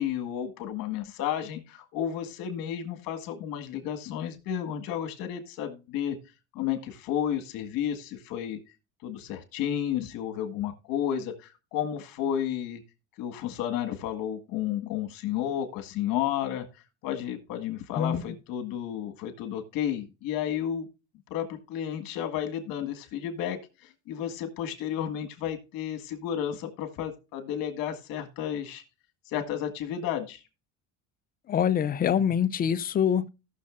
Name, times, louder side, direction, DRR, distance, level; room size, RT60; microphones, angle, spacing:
voice 1, 0.0-6.2 6.5-8.6 9.0-12.8 13.2-16.7 17.0-20.9 21.3-28.8 29.3-30.4, left 10 dB, 65° left, 1.8 m, -32 dB
voice 2, 31.5-33.3, left 8 dB, 25° left, 0.4 m, -25 dB
17.5 x 6.4 x 2.5 m
cardioid pair, 140°, 36 cm